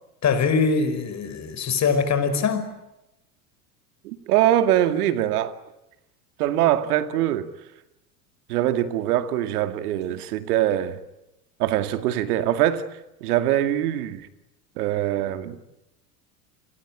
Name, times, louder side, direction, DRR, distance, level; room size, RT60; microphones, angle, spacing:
voice 1, 0.2-2.7, left 5 dB, 35° left, 5.6 m, -22 dB
voice 2, 4.0-5.5 6.4-7.5 8.5-11.0 11.6-12.8 13.2-14.3 14.8-15.6, right 12 dB, 70° right, 2.3 m, -23 dB
29.0 x 21.5 x 9.0 m
hypercardioid pair, 85°, 47 cm